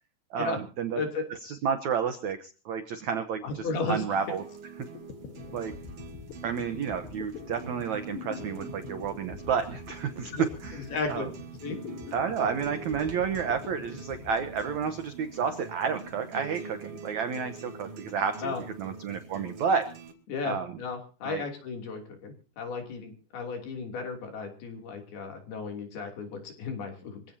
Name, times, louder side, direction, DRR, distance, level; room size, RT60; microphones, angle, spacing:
voice 1, 0.3-1.0 1.4-4.4 5.5-5.7 6.4-10.8 11.1-11.3 12.1-19.9 20.4-20.7 21.2-21.4, right 6 dB, 80° right, 8 dB, 1.7 m, -31 dB
voice 2, 3.4-4.0 10.3-10.4 10.7-11.3 11.6-11.8 18.4-18.6 20.3-27.2, left 4 dB, 65° left, 3 dB, 4.8 m, -34 dB
sound 1, 4.1-20.1, right 5 dB, 40° right, 2.6 m, -45 dB
sound 2, 4.5-4.6 4.8-15.3, left 7 dB, 80° left, 3.6 m, -45 dB
25.5 x 16.0 x 2.8 m, 0.37 s
omnidirectional pair, 4.9 m